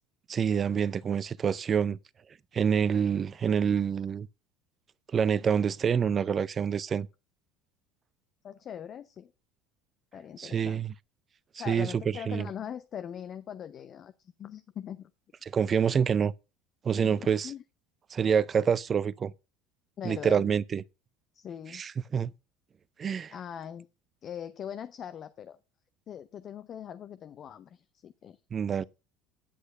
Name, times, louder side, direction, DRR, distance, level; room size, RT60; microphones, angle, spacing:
voice 1, 0.3-2.0 2.5-4.3 5.1-7.1 10.4-10.9 11.7-12.5 15.4-16.3 16.8-17.5 18.1-19.3 20.0-20.8 21.7-22.3 23.0-23.3 28.5-28.8, right 7 dB, 35° right, 0.5 m, -27 dB
voice 2, 8.4-9.3 10.1-10.8 11.5-15.1 17.0-17.6 20.0-20.5 21.3-21.8 23.3-23.9 24.2-25.6 26.1-28.4, left 9 dB, 45° left, 0.7 m, -41 dB
10.0 x 6.4 x 5.5 m
hypercardioid pair, 80°, 0 cm